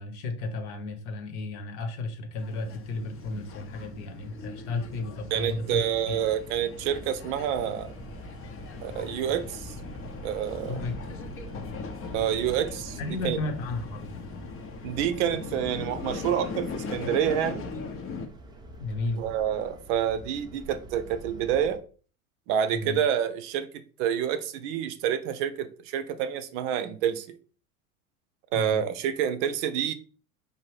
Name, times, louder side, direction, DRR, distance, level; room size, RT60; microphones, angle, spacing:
voice 1, 0.0-5.8 6.1-6.2 10.7-11.1 13.0-14.2 18.8-19.2 22.7-23.0 28.5-28.8, left 3 dB, 55° left, 1.1 m, -33 dB
sound 1, 2.4-18.3, left 5 dB, 30° left, 0.7 m, -40 dB
sound 2, 3.2-21.8, right 2 dB, 10° right, 0.6 m, -46 dB
voice 2, 5.3-7.9 8.8-9.8 10.2-10.8 12.1-13.0 13.2-13.4 14.8-17.6 19.2-21.8 22.5-23.7 24.0-27.3 28.5-29.9, right 9 dB, 55° right, 0.6 m, -28 dB
5.0 x 2.7 x 3.2 m
hypercardioid pair, 90°, 43 cm